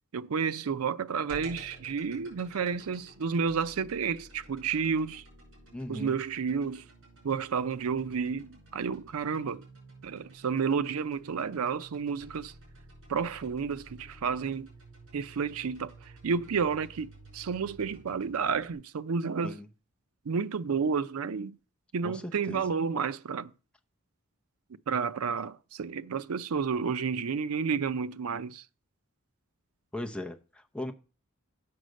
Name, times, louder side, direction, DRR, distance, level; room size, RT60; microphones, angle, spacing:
voice 1, 0.1-5.2 5.9-6.9 7.2-9.6 10.0-12.5 13.1-14.7 15.1-19.6 20.3-21.6 21.9-23.5 24.9-28.6, right 6 dB, 90° right, 0.5 m, -31 dB
sound 1, 1.3-18.7, right 2 dB, 65° right, 5.4 m, -52 dB
voice 2, 5.7-6.2 19.4-19.7 22.0-22.7 29.9-30.9, left 1 dB, 5° left, 0.7 m, -38 dB
7.9 x 5.0 x 6.3 m
head